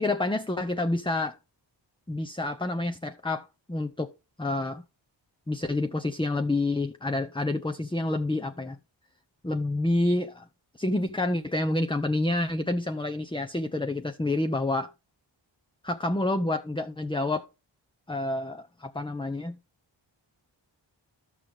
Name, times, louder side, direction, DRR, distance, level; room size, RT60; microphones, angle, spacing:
voice 1, 0.0-1.4 2.1-4.1 4.4-4.8 5.5-8.8 9.4-10.4 10.8-14.9 15.8-17.5 18.1-19.6, left 2 dB, 10° left, 0.8 m, -28 dB
12.0 x 6.6 x 3.6 m
cardioid pair, 45°, 47 cm